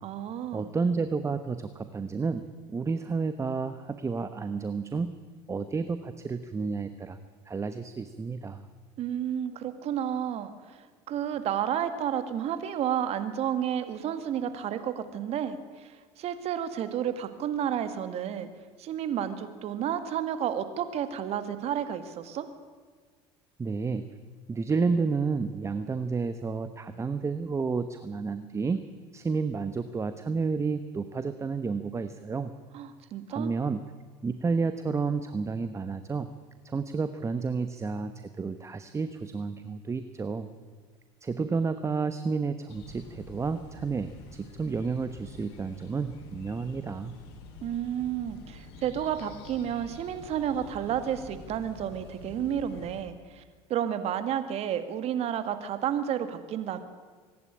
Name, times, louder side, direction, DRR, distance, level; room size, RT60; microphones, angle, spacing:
voice 1, 0.0-0.7 9.0-18.5 18.8-22.5 32.7-33.5 47.6-53.4 53.7-56.8, right 9 dB, 55° right, 10 dB, 2.0 m, -31 dB
voice 2, 0.5-5.1 5.5-7.2 7.5-8.7 23.6-24.1 24.5-28.8 29.1-32.5 33.3-33.8 34.2-36.3 36.6-40.5 41.2-47.1, right 4 dB, 20° right, 11 dB, 1.0 m, -31 dB
sound 1, 42.7-53.0, left 3 dB, 80° left, 3.6 m, -48 dB
24.5 x 11.0 x 9.9 m, 1.5 s
supercardioid pair, 90°, 13 cm